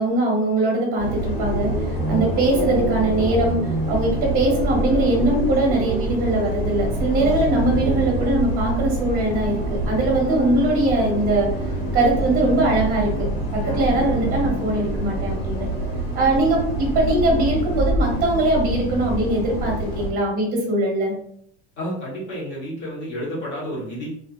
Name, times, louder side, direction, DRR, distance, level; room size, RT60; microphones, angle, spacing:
voice 1, 0.0-1.7 2.1-3.6 3.9-11.5 11.9-13.3 13.5-15.7 16.1-21.1, right 1 dB, 30° right, -2 dB, 0.8 m, -21 dB
Bus, 1.0-20.1, right 1 dB, 60° left, 1.4 m, -25 dB
voice 2, 21.8-24.1, equal, 35° left, -5 dB, 1.1 m, -30 dB
2.4 x 2.2 x 2.3 m, 0.67 s
cardioid pair, 165°, 30 cm